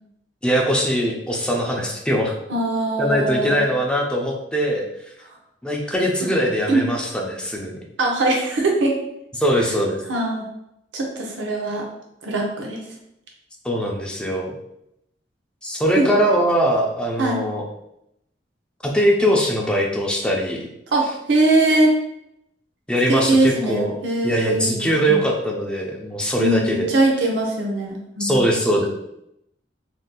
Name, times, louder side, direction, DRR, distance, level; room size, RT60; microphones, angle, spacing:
voice 1, 0.4-2.3 3.0-4.8 5.6-7.8 9.4-10.0 13.6-14.6 15.6-17.6 18.8-20.7 22.9-24.0 24.2-26.9 28.2-28.9, equal, 5° left, -1 dB, 0.5 m, -21 dB
voice 2, 2.5-3.7 6.7-6.8 8.0-9.0 10.1-10.5 10.9-11.9 12.2-12.8 16.0-16.1 17.2-17.4 20.9-21.9 23.1-25.2 26.4-28.4, right 2 dB, 80° right, 0 dB, 0.7 m, -21 dB
3.8 x 2.7 x 2.3 m, 0.80 s
head